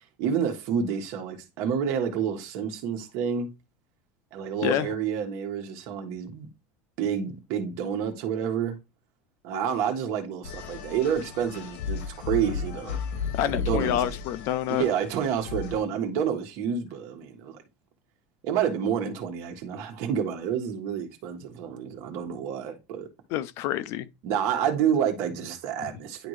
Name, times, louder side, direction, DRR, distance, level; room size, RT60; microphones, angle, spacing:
voice 1, 0.2-3.5 4.3-6.5 7.0-8.8 9.4-13.0 13.5-14.1 14.7-17.6 18.4-23.1 24.2-26.3, right 8 dB, 50° right, 1.6 m, -29 dB
sound 1, 10.4-15.8, left 6 dB, 80° left, 1.8 m, -34 dB
voice 2, 13.4-14.8 23.3-24.1 25.8-25.9, left 12 dB, 45° left, 0.5 m, -27 dB
10.5 x 3.6 x 3.2 m
cardioid pair, 170°, 6 cm